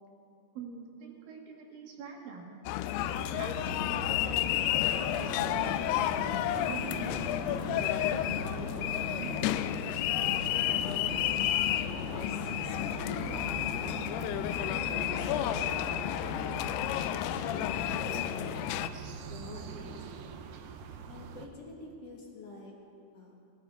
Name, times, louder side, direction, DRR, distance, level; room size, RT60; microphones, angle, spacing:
voice 1, 0.5-2.6 3.4-6.0 6.7-9.3 9.8-10.3, right 5 dB, 65° right, 1 dB, 3.1 m, -45 dB
sound 1, 2.7-18.9, left 13 dB, 85° left, 2.5 m, -31 dB
sound 2, 3.0-21.5, right 5 dB, 90° right, 1.7 m, -42 dB
voice 2, 11.7-14.1 14.8-15.8 16.1-18.7 18.9-20.4 21.1-22.8 23.1-23.4, left 2 dB, 50° left, -2 dB, 2.3 m, -46 dB
18.0 x 16.0 x 4.6 m, 2.6 s
omnidirectional pair, 4.7 m